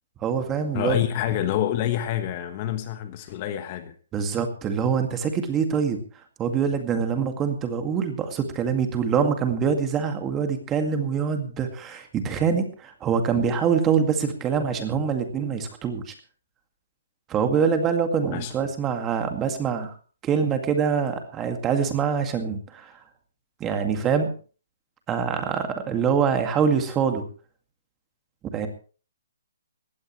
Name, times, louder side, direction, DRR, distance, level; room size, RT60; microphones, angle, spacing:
voice 1, 0.2-1.0 4.1-6.0 6.4-16.1 17.3-19.9 20.2-22.9 23.6-24.3 25.1-27.3 28.5-28.7, right 6 dB, 15° right, 2.1 m, -24 dB
voice 2, 0.7-3.9 18.3-18.5, left 11 dB, 30° left, 1.3 m, -27 dB
19.0 x 16.0 x 3.2 m
hypercardioid pair, 165°, 0 cm